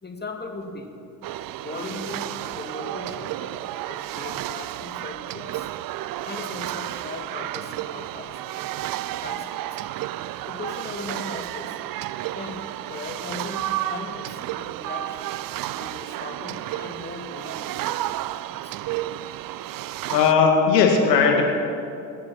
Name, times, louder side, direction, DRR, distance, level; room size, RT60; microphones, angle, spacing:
voice 1, 0.0-0.9 1.6-3.5 3.9-5.7 6.2-8.8 9.2-9.5 10.5-11.8 12.3-12.6 12.9-15.2 15.7-18.3 18.6-18.8, left 3 dB, 20° left, 3 dB, 2.4 m, -38 dB
sound 1, 1.2-20.3, right 14 dB, 45° right, 0.5 m, -32 dB
voice 2, 20.1-21.4, left 5 dB, 90° left, 2 dB, 1.9 m, -17 dB
21.5 x 7.7 x 6.0 m, 2.6 s
hypercardioid pair, 55°, 48 cm